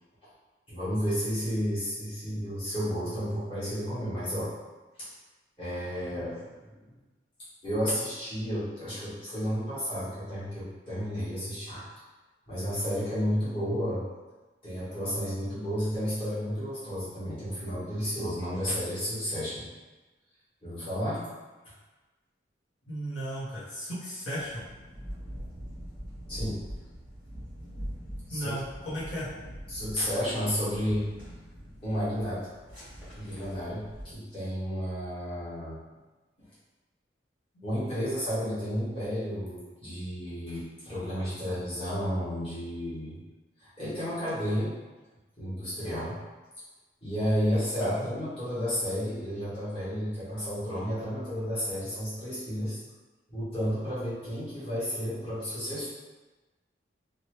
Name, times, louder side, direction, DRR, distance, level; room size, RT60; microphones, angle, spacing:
voice 1, 0.7-4.5 5.0-5.1 5.6-6.8 7.6-11.9 12.5-14.0 14.6-19.7 20.6-21.3 26.3-26.6 28.3-28.5 29.7-31.1 31.8-32.5 33.1-35.8 37.6-43.2 43.6-44.7 45.4-46.2 47.0-52.8 53.3-55.9, equal, 30° left, -12 dB, 1.3 m, -32 dB
voice 2, 22.9-24.6 28.3-29.3 47.8-48.1, equal, 75° left, -10 dB, 1.0 m, -35 dB
sound 1, 24.3-34.1, equal, 10° left, 1.4 m, -43 dB
2.9 x 2.3 x 3.0 m, 1.2 s
head